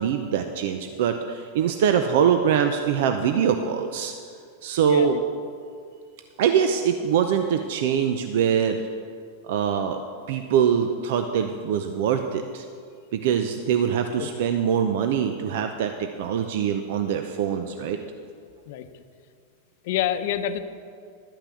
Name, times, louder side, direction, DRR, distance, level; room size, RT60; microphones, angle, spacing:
voice 1, 0.0-4.1 4.6-5.2 6.4-8.8 9.4-10.0 10.3-12.7 13.1-18.0, right 8 dB, 65° right, 7 dB, 0.6 m, -23 dB
voice 2, 4.8-5.2 14.2-14.3 18.7-18.9 19.8-20.6, left 10 dB, 65° left, 9 dB, 0.7 m, -27 dB
12.0 x 5.8 x 8.4 m, 2.2 s
supercardioid pair, 130°, 0 cm